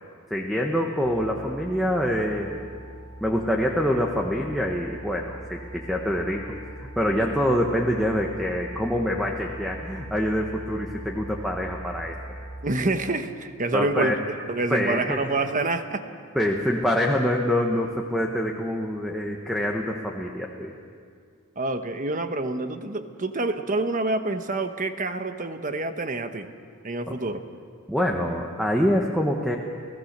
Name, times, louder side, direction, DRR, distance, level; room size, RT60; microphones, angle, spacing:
voice 1, 0.3-2.6 3.2-12.1 13.7-14.2 14.7-15.2 16.3-20.7 27.1-27.2 27.9-29.6, equal, ahead, 0 dB, 1.2 m, -25 dB
sound 1, 1.0-12.5, right 1 dB, 60° right, 7.9 m, -41 dB
voice 2, 12.6-14.1 14.5-16.0 21.6-26.5 26.8-27.4, right 2 dB, 35° right, 8 dB, 1.1 m, -27 dB
30.0 x 16.0 x 6.7 m, 2.2 s
head